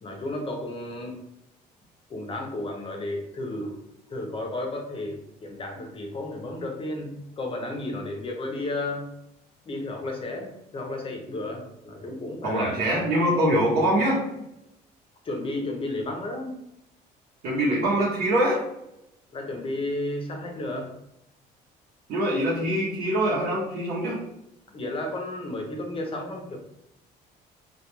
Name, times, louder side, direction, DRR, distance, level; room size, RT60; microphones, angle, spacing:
voice 1, 0.0-1.2 2.1-3.8 4.1-9.1 9.7-12.8 15.2-16.6 19.3-20.9 24.7-26.6, left 2 dB, 35° left, 3 dB, 0.6 m, -33 dB
voice 2, 12.4-14.2 17.4-18.6 22.1-24.2, right 1 dB, 70° right, -6 dB, 0.8 m, -23 dB
2.2 x 2.2 x 2.9 m, 0.83 s
cardioid pair, 110°, 17 cm